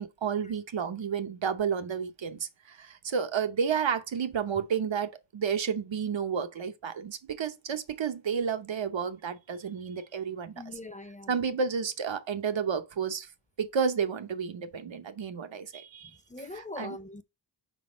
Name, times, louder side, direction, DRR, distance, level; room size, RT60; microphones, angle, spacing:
voice 1, 0.0-10.6 11.3-13.3 13.6-16.2 16.5-17.0, right 6 dB, 80° right, 0.9 m, -31 dB
voice 2, 10.5-11.4 16.0-17.2, left 2 dB, 15° left, 0.6 m, -42 dB
5.1 x 3.8 x 4.9 m
wide cardioid pair, 80°, 45 cm